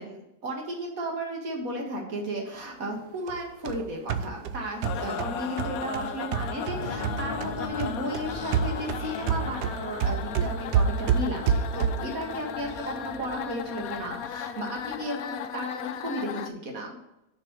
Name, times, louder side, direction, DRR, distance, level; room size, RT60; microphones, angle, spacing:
voice 1, 0.0-17.0, right 1 dB, 55° right, 0 dB, 2.2 m, -34 dB
sound 1, 3.3-7.5 7.8-12.2, right 7 dB, 80° right, 1.2 m, -28 dB
sound 2, 4.8-16.5, left 8 dB, 70° left, 1.0 m, -36 dB
sound 3, 6.7-15.0, left 2 dB, 45° left, 0.7 m, -41 dB
6.8 x 5.4 x 6.5 m, 0.89 s
omnidirectional pair, 1.8 m